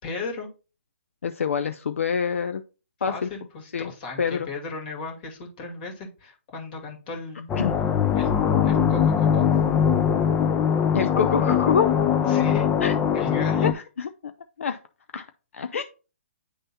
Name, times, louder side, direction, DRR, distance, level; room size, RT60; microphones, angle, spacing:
voice 1, 0.0-0.5 3.1-7.5 8.1-8.3 8.6-9.5 12.3-12.7 13.1-13.7, left 4 dB, 40° left, 0 dB, 2.1 m, -36 dB
voice 2, 1.2-2.6 3.0-3.3 3.7-3.9 4.2-4.5 7.6-7.8 10.9-11.9 12.8-13.0 13.6-14.1 14.6-14.8 15.1-15.3 15.5-15.8, left 6 dB, 75° left, 8 dB, 0.5 m, -26 dB
sound 1, 7.5-13.7, left 8 dB, 15° left, 0.4 m, -21 dB
10.0 x 3.4 x 2.8 m, 0.34 s
hypercardioid pair, 140°, 7 cm